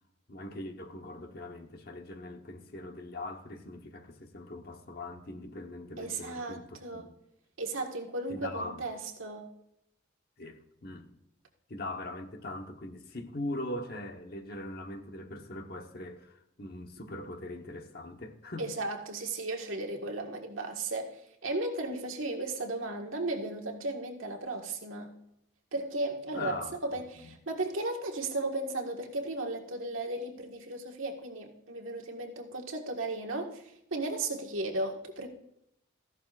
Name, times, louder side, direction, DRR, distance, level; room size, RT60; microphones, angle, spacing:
voice 1, 0.3-7.1 8.3-8.9 10.4-11.2 11.7-18.7 26.3-26.7 27.2-27.3, left 1 dB, 50° left, 1.1 m, -41 dB
voice 2, 6.0-7.1 7.6-9.5 18.6-25.1 25.7-33.6 33.9-35.3, right 2 dB, 90° right, 1.7 m, -35 dB
15.0 x 11.5 x 2.5 m
head